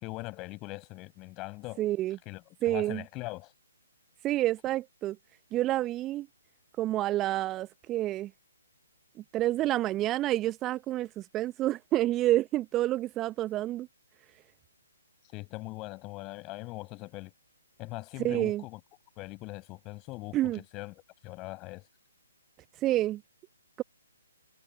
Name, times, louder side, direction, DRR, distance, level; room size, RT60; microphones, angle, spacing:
voice 1, 0.0-1.9 2.3-3.5 15.3-17.3 17.8-18.8 19.2-20.9 21.2-21.9, left 22 dB, 20° left, 5.2 m, -41 dB
voice 2, 1.8-2.2 2.6-3.0 4.2-5.2 5.5-6.3 6.8-8.3 9.3-13.9 18.2-18.6 20.3-20.6 22.8-23.2, right 15 dB, 20° right, 0.8 m, -28 dB
figure-of-eight pair, 135°, 0 cm